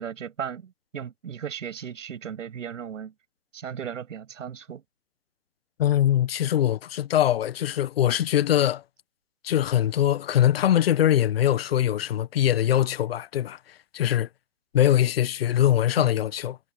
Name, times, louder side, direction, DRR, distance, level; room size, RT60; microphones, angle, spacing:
voice 1, 0.0-3.1 3.5-4.8 16.0-16.3, right 8 dB, 55° right, 7.0 m, -36 dB
voice 2, 5.8-8.8 9.4-13.6 13.9-14.3 14.7-16.6, left 11 dB, 40° left, 1.5 m, -22 dB
hypercardioid pair, 145°, 45 cm